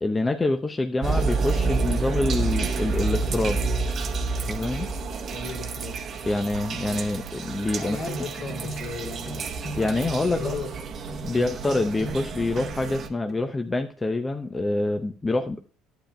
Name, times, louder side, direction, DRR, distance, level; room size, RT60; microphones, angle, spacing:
voice 1, 0.0-3.6 4.4-4.9 6.3-8.0 9.8-10.6 11.2-15.6, left 2 dB, 20° left, 6 dB, 0.7 m, -26 dB
sound 1, 1.0-13.1, right 4 dB, 45° right, 0.9 m, -29 dB
voice 2, 5.0-6.0 7.8-9.4 10.2-10.7 11.3-11.5, left 3 dB, 60° left, 3 dB, 2.5 m, -36 dB
sound 2, 7.3-7.4 8.1-10.8 11.1-11.4 11.6-13.0 13.3-13.4, equal, 40° left, 2.3 m, -38 dB
11.5 x 8.7 x 2.2 m, 0.41 s
hypercardioid pair, 70°, 0 cm